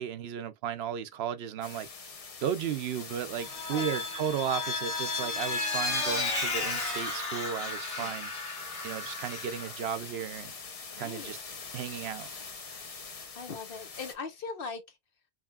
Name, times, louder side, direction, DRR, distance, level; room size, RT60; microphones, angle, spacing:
voice 1, 0.0-1.9 2.4-8.3 8.8-10.5 11.0-11.4 11.7-12.3, right 8 dB, 75° right, 0.8 m, -34 dB
sound 1, 1.6-14.1, left 4 dB, 40° left, 0.7 m, -44 dB
Vehicle, 3.4-9.8, left 3 dB, 85° left, 1.8 m, -33 dB
voice 2, 10.9-11.3 13.3-15.0, left 4 dB, 60° left, 1.0 m, -40 dB
4.8 x 3.0 x 2.3 m
omnidirectional pair, 1.1 m